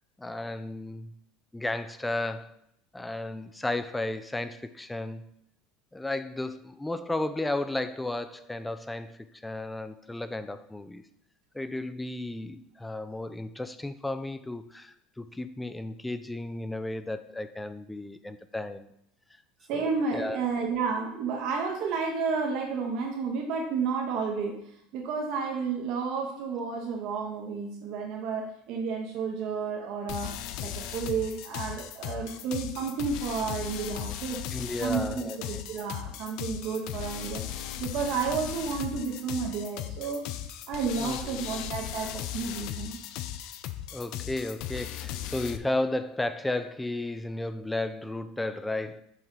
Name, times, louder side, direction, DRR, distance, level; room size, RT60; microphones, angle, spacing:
voice 1, 0.2-1.1 1.5-2.5 2.9-5.3 5.9-11.0 11.5-18.9 19.7-20.4 34.5-35.6 41.0-41.4 43.9-49.0, left 2 dB, 10° left, 0.4 m, -34 dB
voice 2, 19.7-24.6 24.9-30.3 30.6-34.4 34.8-40.2 40.7-43.0, right 5 dB, 60° right, 1.0 m, -31 dB
sound 1, 30.1-45.6, left 11 dB, 65° left, 0.4 m, -37 dB
5.5 x 3.5 x 5.6 m
hypercardioid pair, 90°, 0 cm